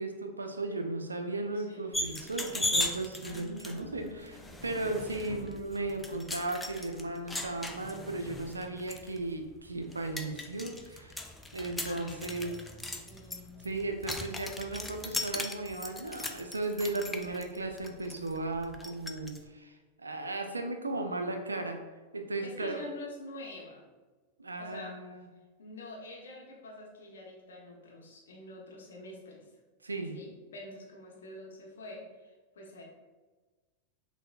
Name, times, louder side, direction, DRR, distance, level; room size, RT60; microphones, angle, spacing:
voice 1, 0.0-4.4 4.6-11.2 11.5-12.5 13.6-21.8 22.1-22.8 24.4-25.3 29.8-30.2, right 2 dB, 80° right, 5 dB, 0.4 m, -36 dB
voice 2, 1.5-1.9 3.2-5.4 11.8-12.8 13.0-13.6 22.4-23.8 24.6-25.0 25.6-29.4 30.1-32.8, left 1 dB, 65° left, -1 dB, 0.7 m, -47 dB
sound 1, 1.9-19.4, left 1 dB, 5° left, 0.3 m, -39 dB
5.6 x 2.0 x 2.4 m, 1.3 s
figure-of-eight pair, 90°, 0 cm